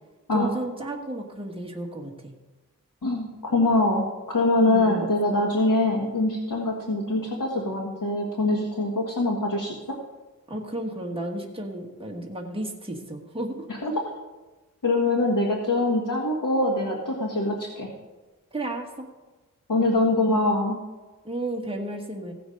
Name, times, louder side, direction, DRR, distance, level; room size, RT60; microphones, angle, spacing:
voice 1, 0.3-2.3 4.7-5.1 10.5-13.7 18.5-19.1 21.2-22.3, right 1 dB, 15° right, 0 dB, 1.5 m, -33 dB
voice 2, 3.0-10.0 13.8-13.9 14.8-17.9 19.7-20.8, left 2 dB, 75° left, -1 dB, 1.7 m, -24 dB
16.5 x 6.2 x 5.2 m, 1.2 s
wide cardioid pair, 95°, 33 cm